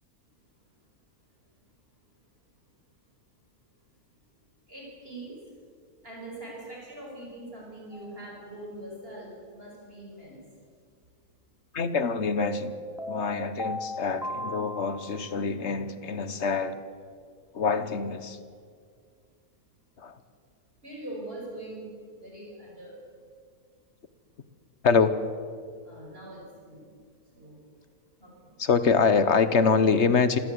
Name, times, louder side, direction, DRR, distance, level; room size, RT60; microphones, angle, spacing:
voice 1, 4.7-5.4 6.0-10.4 20.8-23.0 25.8-26.9 27.3-27.6 28.2-28.5, right 1 dB, 40° right, -3 dB, 5.9 m, -42 dB
sound 1, 7.9-8.2 12.4-15.4, equal, ahead, 2.0 m, -37 dB
voice 2, 11.7-12.7 13.1-16.8 17.5-18.4 20.0-20.2 24.8-25.1 28.6-30.4, left 5 dB, 50° left, 12 dB, 1.5 m, -25 dB
27.0 x 16.5 x 8.1 m, 2.1 s
omnidirectional pair, 1.5 m